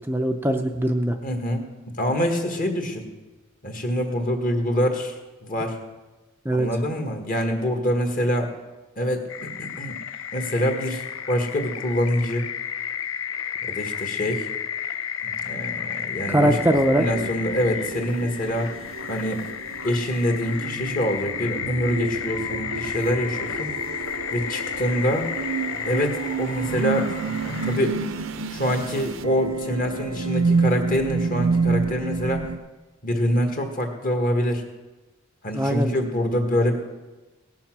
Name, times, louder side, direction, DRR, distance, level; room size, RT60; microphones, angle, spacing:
voice 1, 0.0-1.2 6.5-6.7 16.3-17.0 35.5-35.9, right 1 dB, 10° right, 4 dB, 0.5 m, -21 dB
voice 2, 1.2-1.6 2.0-3.1 3.6-5.8 6.5-8.5 9.0-10.0 10.3-12.5 13.7-14.5 15.2-16.6 16.9-18.7 19.1-19.4 19.8-23.7 24.3-25.3 25.8-27.1 27.4-28.0 28.5-32.5 33.0-34.6 35.4-36.8, equal, 40° left, 4 dB, 1.7 m, -25 dB
sound 1, 9.3-27.8, left 8 dB, 70° left, 0.5 m, -32 dB
sound 2, 16.3-32.6, right 4 dB, 65° right, 0.7 m, -29 dB
17.5 x 7.2 x 6.0 m, 1.2 s
head